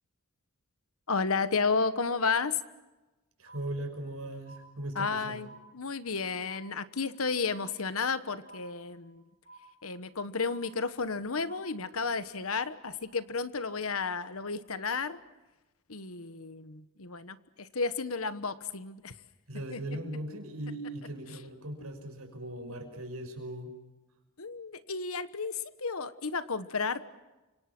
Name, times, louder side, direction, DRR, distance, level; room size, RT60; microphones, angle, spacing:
voice 1, 1.1-2.6 4.9-9.2 9.8-15.2 15.9-19.1 19.7-19.8 24.4-27.1, left 4 dB, 80° left, 13 dB, 1.3 m, -32 dB
voice 2, 3.4-5.5 19.5-23.7, right 1 dB, 85° right, 5 dB, 5.9 m, -39 dB
sound 1, 3.5-4.2 4.5-5.2 5.5-6.2 6.5-7.2 7.5-8.2 8.5-9.2 9.5-10.2 10.5-11.2 11.5-12.2 12.5-13.2, right 3 dB, 45° right, 7.4 m, -55 dB
29.5 x 26.0 x 6.1 m, 1.1 s
head